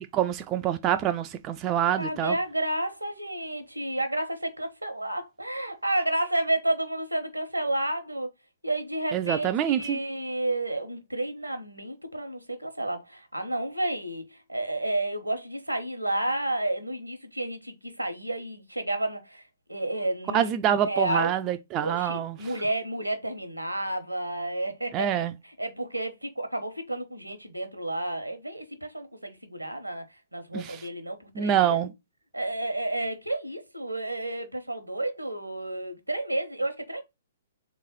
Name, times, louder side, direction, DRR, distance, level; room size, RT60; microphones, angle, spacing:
voice 1, 0.1-2.3 9.1-10.0 20.3-22.3 24.9-25.3 30.5-30.8 31.4-31.9, right 10 dB, 25° right, 0.3 m, -26 dB
voice 2, 2.0-8.3 8.6-21.3 21.8-31.8 32.3-37.0, right 1 dB, 90° right, 0.9 m, -31 dB
3.6 x 3.1 x 4.0 m
figure-of-eight pair, 120°, 0 cm